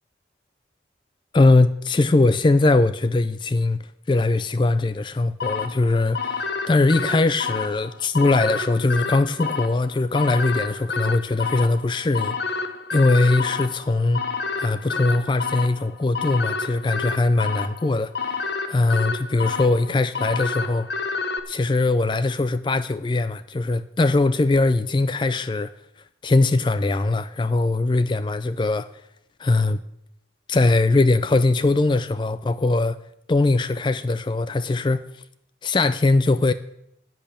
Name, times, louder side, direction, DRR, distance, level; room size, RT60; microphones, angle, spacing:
voice 1, 1.3-3.8 4.1-12.6 12.9-14.2 14.6-20.9 21.5-25.7 26.2-28.9 29.4-29.8 30.5-33.0 33.3-35.0 35.6-36.5, left 2 dB, 25° left, 0.3 m, -21 dB
sound 1, 5.4-21.4, left 4 dB, 65° left, 1.0 m, -29 dB
10.5 x 8.6 x 7.3 m
head